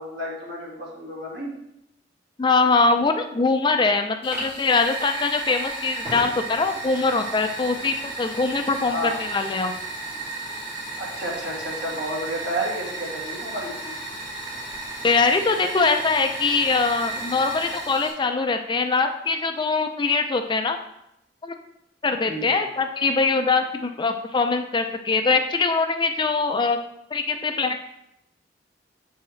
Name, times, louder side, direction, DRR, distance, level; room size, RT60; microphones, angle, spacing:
voice 1, 0.0-1.5 8.8-9.2 11.0-13.9 22.2-22.6, right 1 dB, 70° right, -4 dB, 2.0 m, -31 dB
voice 2, 2.4-9.8 15.0-20.8 21.4-21.5 22.0-26.8 27.1-27.8, left 4 dB, 25° left, 6 dB, 0.4 m, -22 dB
Fire, 4.2-18.1, right 2 dB, 15° right, 2.4 m, -34 dB
7.2 x 4.6 x 3.1 m, 0.82 s
head